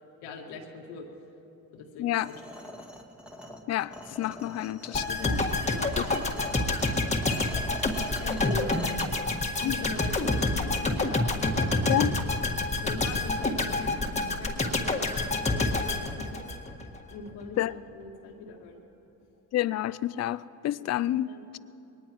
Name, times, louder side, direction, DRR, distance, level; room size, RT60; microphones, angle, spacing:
voice 1, 0.2-1.1 1.7-2.4 5.7-5.9 6.3-6.7 8.2-9.1 9.6-11.7 12.8-16.4 17.1-18.8 20.8-20.9 21.3-21.6, left 3 dB, 85° left, 2.0 m, -41 dB
sound 1, 2.2-9.1, equal, 5° right, 1.8 m, -44 dB
voice 2, 3.7-5.4 6.0-6.1 9.6-9.8 11.9-12.2 17.6-17.7 19.5-21.3, left 14 dB, 45° left, 0.4 m, -29 dB
sound 2, 4.9-17.0 17.3-17.4, left 2 dB, 15° left, 1.7 m, -28 dB
22.0 x 19.5 x 3.1 m
supercardioid pair, 75°, 39 cm